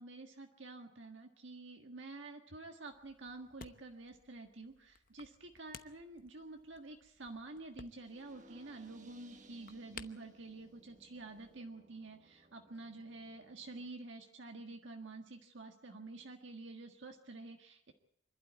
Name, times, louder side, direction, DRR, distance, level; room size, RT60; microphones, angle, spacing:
voice 1, 0.0-17.9, right 2 dB, 75° right, 3 dB, 1.6 m, -49 dB
sound 1, 2.9-11.6, left 6 dB, 45° left, 0.9 m, -58 dB
sound 2, 7.9-13.9, right 1 dB, 40° right, 1.5 m, -62 dB
26.0 x 12.0 x 9.5 m, 0.74 s
head